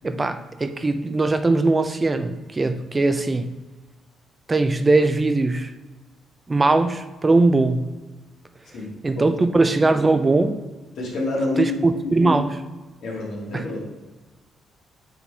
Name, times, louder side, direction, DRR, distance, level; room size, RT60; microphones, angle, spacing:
voice 1, 0.0-3.5 4.5-5.7 6.5-7.9 9.0-10.6 11.6-12.6 13.5-13.7, right 2 dB, 25° right, 9 dB, 0.4 m, -20 dB
voice 2, 8.7-9.3 11.0-12.4 13.0-13.8, left 2 dB, 75° left, -3 dB, 1.9 m, -28 dB
7.2 x 3.9 x 3.3 m, 1.2 s
cardioid pair, 90°, 0 cm